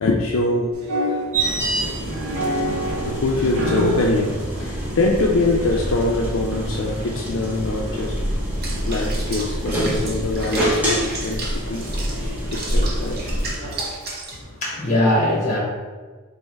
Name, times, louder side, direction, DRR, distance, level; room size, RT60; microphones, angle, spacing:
voice 1, 0.0-0.7 3.0-8.1 8.9-11.0 11.2-11.9 12.5-13.2 13.6-13.7, left 2 dB, 70° left, -1 dB, 0.4 m, -23 dB
sound 1, 0.7-14.0, equal, 85° right, 0.7 m, -32 dB
sound 2, 1.3-13.5, right 1 dB, 10° right, 0.9 m, -26 dB
Water / Bathtub (filling or washing), 8.6-14.4, right 3 dB, 50° right, 0.7 m, -34 dB
voice 2, 14.3-15.6, left 1 dB, 35° left, -4 dB, 1.3 m, -21 dB
3.3 x 2.6 x 4.5 m, 1.4 s
head